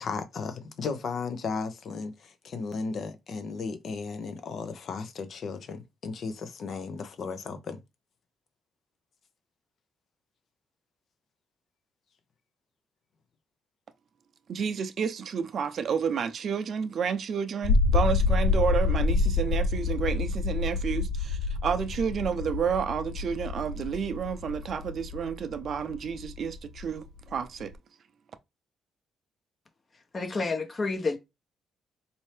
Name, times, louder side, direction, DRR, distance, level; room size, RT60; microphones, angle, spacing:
voice 1, 0.0-7.8, left 4 dB, 60° left, 0.8 m, -35 dB
voice 2, 14.5-27.7, right 7 dB, 55° right, 0.5 m, -30 dB
sound 1, 17.6-27.7, left 4 dB, 80° left, 0.4 m, -28 dB
voice 3, 30.1-31.2, left 3 dB, 35° left, 1.0 m, -29 dB
4.3 x 2.7 x 3.3 m
cardioid pair, 90°, 0 cm